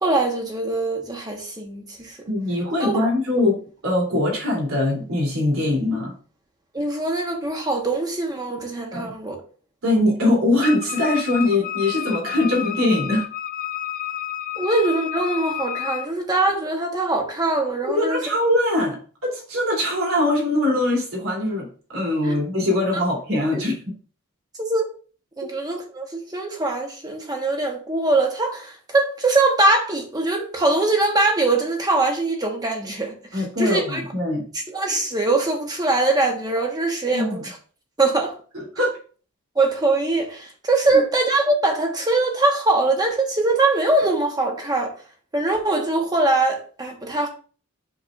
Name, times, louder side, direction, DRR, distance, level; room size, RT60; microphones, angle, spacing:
voice 1, 0.0-2.2 2.8-2.9 6.7-9.4 14.6-18.2 22.2-22.4 23.5-23.6 24.6-24.9 25.4-34.0 34.7-37.6 38.0-38.3 39.5-44.9 45.3-47.3, right 2 dB, 20° right, 1.1 m, -22 dB
voice 2, 2.3-6.1 8.9-9.1 9.8-13.2 17.9-19.0 19.3-21.7 21.9-23.7 33.3-34.4 37.1-37.4 38.5-39.0, left 1 dB, 85° right, 3.3 m, -22 dB
Wind instrument woodwind instrument, 10.6-16.1, left 10 dB, 40° left, 0.5 m, -30 dB
8.1 x 6.1 x 2.6 m
head